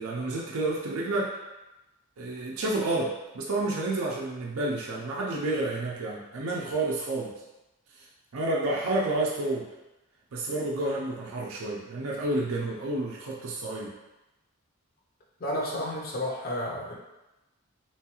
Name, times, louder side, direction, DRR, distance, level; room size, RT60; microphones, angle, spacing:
voice 1, 0.0-1.3 2.2-7.3 7.9-8.1 8.3-9.7 10.3-13.9, right 2 dB, 70° right, -4 dB, 0.4 m, -30 dB
voice 2, 15.4-17.0, left 1 dB, 40° left, -2 dB, 0.5 m, -31 dB
3.0 x 2.3 x 2.9 m, 1.0 s
head